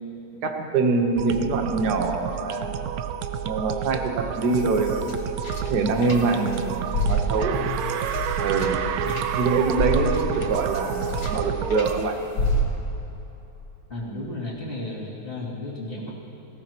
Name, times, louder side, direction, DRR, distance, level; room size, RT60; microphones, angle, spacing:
voice 1, 0.4-2.9 3.4-5.2 5.7-7.6 8.4-8.8 9.3-12.2, right 4 dB, 55° right, 4 dB, 1.6 m, -24 dB
sound 1, 1.2-12.1, right 8 dB, 90° right, 0.7 m, -30 dB
sound 2, 4.2-6.6 6.9-11.9 12.4-13.0, equal, 75° left, 2.2 m, -29 dB
sound 3, 6.7-7.0 7.3-11.9, right 9 dB, 70° right, 1.1 m, -34 dB
voice 2, 7.5-7.8 9.0-9.1 13.9-16.1, left 2 dB, 25° left, -7 dB, 3.0 m, -34 dB
19.0 x 17.0 x 3.0 m, 2.9 s
omnidirectional pair, 2.2 m